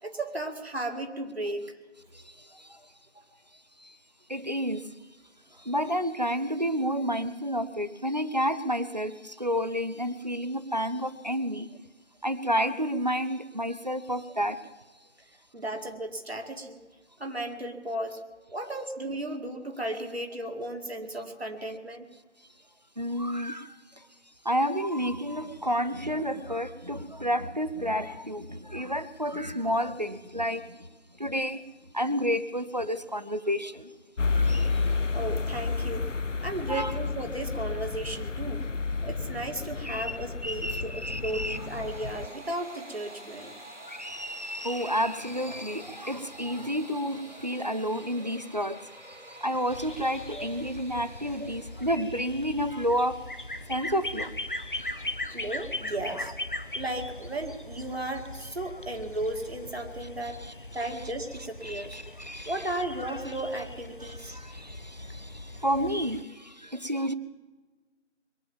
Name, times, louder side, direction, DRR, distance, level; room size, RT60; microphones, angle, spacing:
voice 1, 0.0-1.8 15.5-16.8 17.2-18.2 18.5-22.1 35.1-36.1 36.4-38.6 39.0-43.5 55.3-56.4 56.7-60.4 60.7-62.0 62.5-64.4, right 1 dB, 60° right, 4 dB, 2.2 m, -35 dB
voice 2, 2.1-2.9 3.8-4.0 4.3-4.9 5.5-11.7 12.2-14.6 23.0-24.1 24.4-30.9 31.2-31.6 31.9-33.9 34.3-35.1 36.7-36.9 39.9-40.1 40.4-41.6 43.8-48.8 49.1-53.2 53.7-54.3 54.6-55.0 56.1-56.2 56.6-56.7 60.4-60.5 61.6-62.5 64.0-67.1, equal, 35° right, 13 dB, 0.6 m, -30 dB
sound 1, 34.2-42.3, left 4 dB, 90° left, 0.9 m, -31 dB
sound 2, 40.8-51.9, right 1 dB, 75° right, 4.0 m, -48 dB
sound 3, 49.7-66.2, left 1 dB, 45° left, 0.6 m, -40 dB
22.0 x 8.7 x 7.2 m, 1.2 s
figure-of-eight pair, 175°, 36 cm